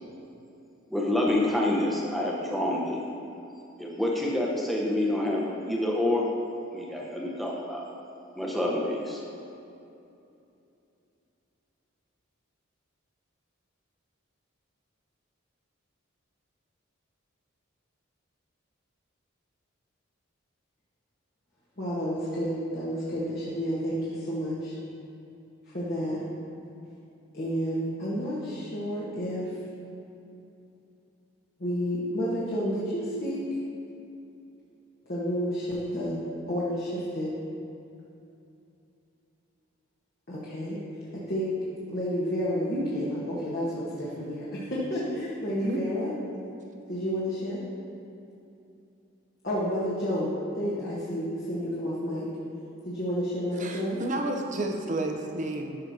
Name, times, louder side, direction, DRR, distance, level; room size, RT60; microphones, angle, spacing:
voice 1, 0.9-3.0 3.8-6.2 6.7-7.8 8.4-9.2, left 1 dB, ahead, -3 dB, 0.9 m, -27 dB
voice 2, 21.8-24.8 25.7-26.2 27.3-29.5 31.6-33.4 35.1-36.2 36.5-37.4 40.3-40.8 41.3-41.5 41.9-43.6 44.0-46.1 46.9-47.6 49.4-52.3 52.8-54.0, equal, 45° left, -8 dB, 1.2 m, -30 dB
voice 3, 53.6-55.8, right 1 dB, 40° right, 3 dB, 0.6 m, -31 dB
11.5 x 6.2 x 2.8 m, 2.7 s
head